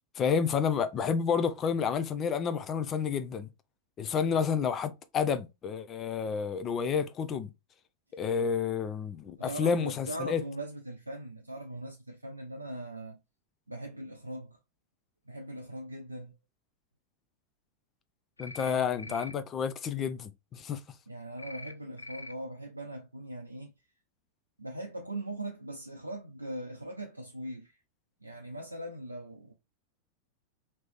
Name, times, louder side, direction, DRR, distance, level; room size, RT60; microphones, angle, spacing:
voice 1, 0.2-3.5 4.0-7.5 8.1-10.4 18.4-20.8, left 6 dB, 30° left, 0.5 m, -30 dB
voice 2, 9.4-13.2 13.7-14.6 15.3-16.4 18.6-19.2 21.1-23.7 24.6-27.8 28.2-29.5, right 1 dB, 85° right, 0.4 m, -40 dB
sound 1, 18.4-18.7 19.0-19.3 21.4-21.7 22.0-22.3, left 2 dB, 80° left, 0.4 m, -44 dB
3.0 x 2.9 x 3.3 m
figure-of-eight pair, 90°, 0 cm